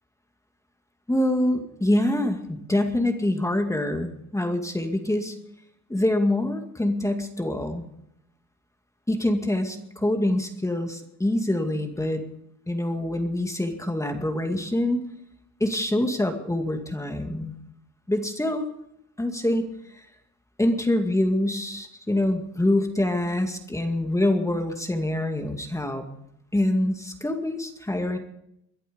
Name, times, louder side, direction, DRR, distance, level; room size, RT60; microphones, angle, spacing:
voice 1, 1.1-5.4 5.9-7.8 9.1-12.2 12.7-15.0 15.6-17.6 18.1-18.7 19.2-19.7 20.0-20.1 20.6-26.0 26.5-28.2, left 1 dB, 10° left, 5 dB, 2.2 m, -25 dB
22.0 x 11.0 x 5.4 m, 0.78 s
cardioid pair, 90°, 30 cm